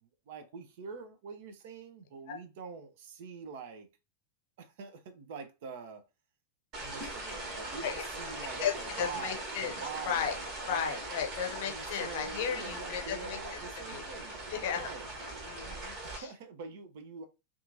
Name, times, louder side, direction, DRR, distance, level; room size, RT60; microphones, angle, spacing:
voice 1, 0.0-3.9 4.6-6.0 6.8-11.0 11.6-14.4 14.7-15.1 16.0-17.3, right 5 dB, 50° right, 0.4 m, -45 dB
sound 1, 6.7-16.2, right 2 dB, 35° right, 1.1 m, -40 dB
voice 2, 8.6-9.7 10.0-10.3 10.7-14.0 14.5-14.9 15.4-16.3, left 8 dB, 50° left, 0.6 m, -35 dB
2.7 x 2.3 x 2.6 m
figure-of-eight pair, 90°, 0 cm